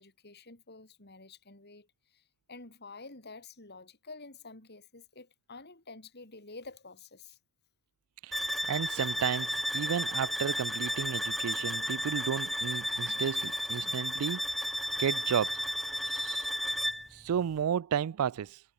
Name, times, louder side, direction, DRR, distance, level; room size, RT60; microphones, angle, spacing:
voice 1, 0.0-7.4, left 3 dB, 50° left, 4.2 m, -49 dB
voice 2, 8.2-14.4 15.0-15.6 16.1-16.5 17.1-18.6, right 8 dB, 75° right, 0.4 m, -33 dB
sound 1, 8.3-17.1, equal, ahead, 0.7 m, -33 dB
head